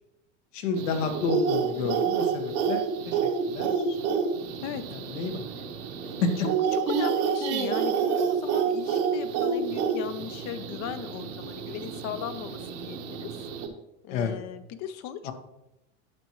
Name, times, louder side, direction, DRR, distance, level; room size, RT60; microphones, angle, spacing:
voice 1, 0.5-3.2 3.5-4.0 4.9-5.4 6.2-6.3 14.1-14.3 15.2-15.3, left 4 dB, 75° left, 4 dB, 1.5 m, -30 dB
sound 1, 0.7-13.7, right 6 dB, 65° right, 1.4 m, -29 dB
voice 2, 4.6-5.0 6.7-13.3 14.0-15.3, left 9 dB, 45° left, 12 dB, 0.8 m, -37 dB
10.5 x 7.1 x 3.1 m, 0.88 s
hypercardioid pair, 95°, 38 cm